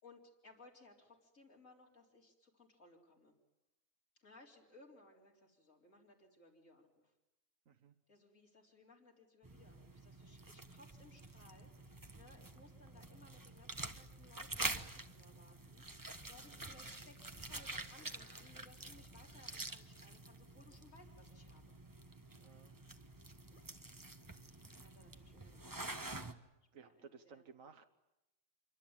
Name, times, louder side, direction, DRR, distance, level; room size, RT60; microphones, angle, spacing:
voice 1, 0.0-3.3 4.1-7.1 8.1-21.7 22.4-22.6 23.5-23.6 24.4-26.3 26.7-27.4, left 2 dB, 75° left, -2 dB, 4.4 m, -63 dB
voice 2, 7.7-8.0 16.4-16.7 22.3-22.7 26.7-27.9, right 6 dB, 80° right, 6 dB, 1.6 m, -58 dB
sound 1, 9.4-26.3, right 2 dB, 15° right, 1.1 m, -48 dB
27.0 x 24.0 x 8.9 m, 0.95 s
omnidirectional pair, 1.4 m